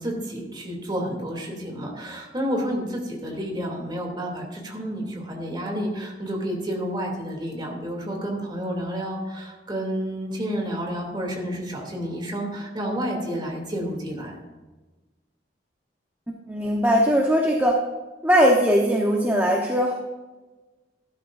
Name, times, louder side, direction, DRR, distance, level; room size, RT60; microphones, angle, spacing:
voice 1, 0.0-14.4, equal, 25° right, 0 dB, 2.8 m, -30 dB
voice 2, 16.3-17.8 18.2-19.9, equal, 10° right, -1 dB, 1.1 m, -20 dB
15.0 x 12.5 x 2.6 m, 1.2 s
head